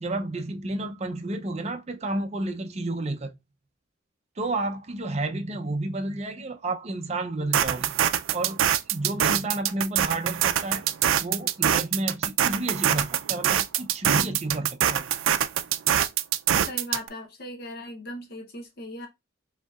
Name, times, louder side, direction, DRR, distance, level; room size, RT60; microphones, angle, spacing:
voice 1, 0.0-3.3 4.4-7.9 8.3-8.6 8.9-10.8 11.2-15.1, right 2 dB, 35° right, 0.5 m, -31 dB
sound 1, 7.5-17.1, right 10 dB, 85° right, 0.4 m, -24 dB
voice 2, 16.6-19.1, left 1 dB, 50° left, 0.8 m, -38 dB
5.0 x 2.8 x 2.3 m
head